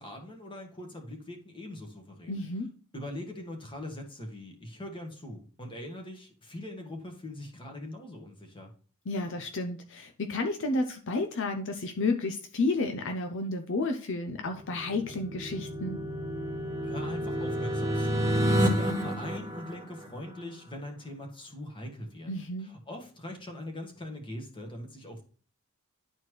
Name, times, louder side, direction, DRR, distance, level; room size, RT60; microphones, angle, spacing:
voice 1, 0.0-2.4 2.9-8.7 16.8-22.3 22.6-25.2, left 1 dB, 25° left, 3 dB, 1.5 m, -42 dB
voice 2, 2.3-2.7 9.1-16.0 22.3-22.7, left 2 dB, 60° left, 6 dB, 0.6 m, -31 dB
sound 1, 14.5-20.4, equal, 15° right, 0.9 m, -30 dB
11.0 x 4.3 x 3.2 m, 0.41 s
head